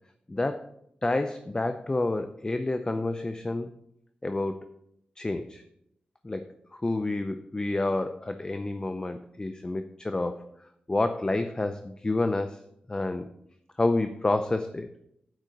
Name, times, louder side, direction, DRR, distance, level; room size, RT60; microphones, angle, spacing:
voice 1, 0.3-0.7 1.0-3.7 4.2-4.6 5.2-5.6 6.2-10.4 10.9-12.6 12.9-13.3 13.8-14.9, left 2 dB, 25° left, 8 dB, 0.5 m, -29 dB
9.2 x 5.0 x 5.1 m, 0.76 s
cardioid pair, 80°, 3 cm